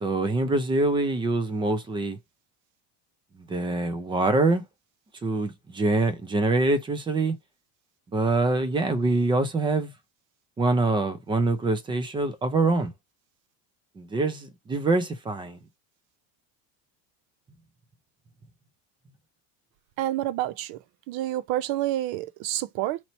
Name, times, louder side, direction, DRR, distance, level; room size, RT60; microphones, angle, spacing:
voice 1, 0.0-2.2 3.5-4.6 5.2-7.3 8.1-9.9 10.6-12.9 14.0-15.6, right 2 dB, 10° right, 0.4 m, -24 dB
voice 2, 20.0-20.8 21.1-23.0, right 14 dB, 60° right, 0.6 m, -28 dB
3.0 x 2.8 x 4.1 m
cardioid pair, 160°, 42 cm